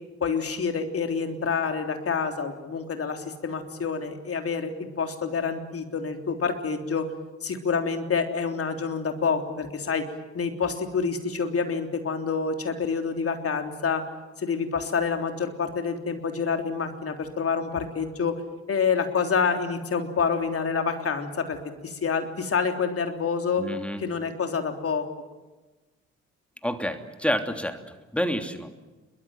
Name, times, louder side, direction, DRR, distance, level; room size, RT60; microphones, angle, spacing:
voice 1, 0.2-7.1 7.4-10.1 10.3-14.0 14.4-18.4 18.7-21.6 21.8-23.7 24.0-25.1, left 5 dB, 40° left, 5 dB, 3.5 m, -27 dB
voice 2, 23.6-24.0 26.6-27.8 28.1-28.7, equal, 5° left, 6 dB, 3.1 m, -28 dB
27.0 x 23.0 x 7.8 m, 1.2 s
figure-of-eight pair, 40°, 35 cm